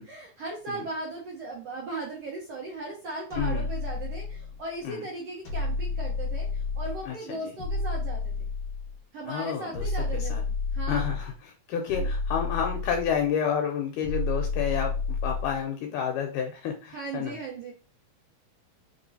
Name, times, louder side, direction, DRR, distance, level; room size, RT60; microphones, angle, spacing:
voice 1, 0.0-8.5 9.1-11.1 12.0-12.1 16.9-17.7, right 2 dB, 70° right, -3 dB, 1.5 m, -37 dB
sound 1, 3.3-4.6 5.5-7.1 7.6-9.0 9.7-11.3 11.9-13.3 14.0-15.6, left 3 dB, 55° left, 1.4 m, -30 dB
voice 2, 7.1-7.5 9.3-9.9 10.2-10.4 10.8-14.9 15.2-17.4, left 8 dB, 80° left, 2 dB, 2.1 m, -30 dB
4.9 x 3.0 x 2.7 m, 0.36 s
omnidirectional pair, 3.9 m